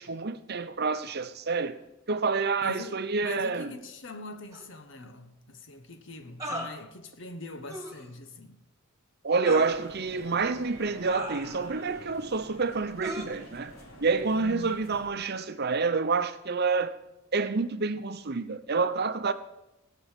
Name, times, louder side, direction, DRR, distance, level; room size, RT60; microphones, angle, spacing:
voice 1, 0.0-1.8 2.1-3.7 9.2-13.7 14.0-17.0 17.3-19.3, right 4 dB, 55° right, 0.8 m, -28 dB
voice 2, 2.6-8.6 14.4-15.0, left 2 dB, 65° left, 1.2 m, -43 dB
sound 1, 4.5-4.6 6.4-6.7 7.7-8.0 9.4-9.8 11.0-11.8 13.0-13.2, right 1 dB, 15° right, 2.2 m, -37 dB
sound 2, 9.5-15.1, equal, 90° left, 3.7 m, -48 dB
18.5 x 6.3 x 7.4 m
head